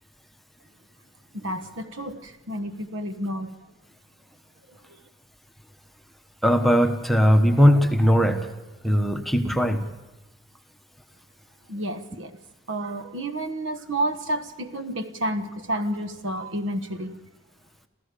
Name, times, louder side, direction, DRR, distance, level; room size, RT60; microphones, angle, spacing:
voice 1, 1.3-3.6 4.7-4.8 11.7-12.4 12.7-17.2, right 1 dB, 65° right, 9 dB, 1.3 m, -30 dB
voice 2, 6.4-8.5 8.8-9.8, equal, ahead, 5 dB, 1.0 m, -19 dB
28.0 x 14.0 x 6.9 m, 1.1 s
head